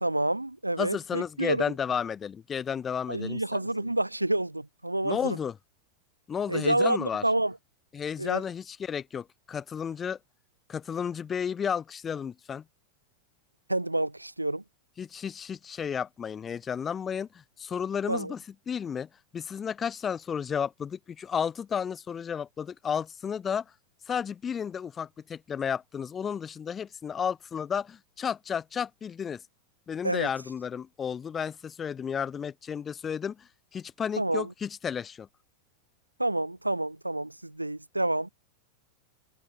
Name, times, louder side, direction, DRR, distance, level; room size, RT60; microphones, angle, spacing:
voice 1, 0.0-1.6 3.1-5.4 6.5-7.5 8.2-8.4 13.7-14.6 18.1-18.3 30.0-30.3 34.2-34.5 36.2-38.3, right 1 dB, 85° right, 0.3 m, -28 dB
voice 2, 0.8-3.6 5.0-5.6 6.3-7.2 7.9-10.2 10.7-12.6 15.0-23.6 24.1-29.4 29.9-35.3, left 7 dB, 20° left, 1.3 m, -32 dB
figure-of-eight pair, 90°, 0 cm